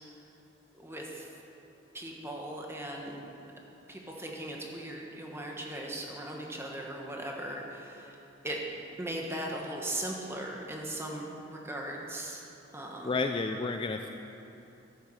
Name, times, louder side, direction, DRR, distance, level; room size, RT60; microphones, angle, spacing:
voice 1, 0.7-1.3 1.9-3.2 3.9-8.2 8.4-12.4 12.7-13.1, right 1 dB, 15° right, -1 dB, 1.5 m, -38 dB
voice 2, 13.0-14.1, left 3 dB, 25° left, 5 dB, 0.4 m, -31 dB
12.5 x 8.2 x 6.4 m, 2.9 s
head